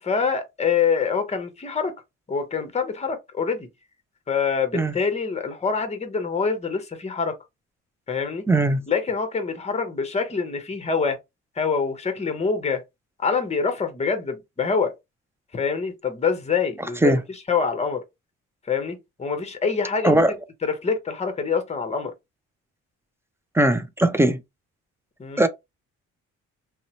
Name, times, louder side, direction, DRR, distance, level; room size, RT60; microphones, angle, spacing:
voice 1, 0.0-1.9 2.3-3.7 4.3-7.3 8.1-8.5 8.9-11.2 11.6-12.8 13.2-14.9 15.5-18.0 18.7-20.2 20.6-22.1 25.2-25.4, left 5 dB, 20° left, 0.8 m, -25 dB
voice 2, 8.5-8.9 17.0-17.2 20.0-20.3 23.5-24.4 25.4-25.5, right 1 dB, 10° right, 0.3 m, -19 dB
2.7 x 2.0 x 2.7 m
cardioid pair, 90°, 30 cm